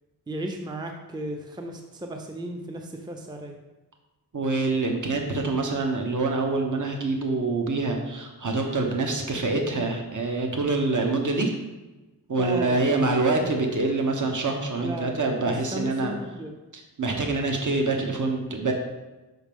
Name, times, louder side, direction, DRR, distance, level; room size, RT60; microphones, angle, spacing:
voice 1, 0.3-3.6 12.4-13.0 14.8-15.1 15.5-16.5, right 1 dB, 10° right, 3 dB, 0.6 m, -34 dB
voice 2, 4.3-11.5 12.3-16.1 16.7-18.7, right 3 dB, 50° right, 2 dB, 1.0 m, -25 dB
6.1 x 5.0 x 3.6 m, 1.1 s
wide cardioid pair, 50°, 40 cm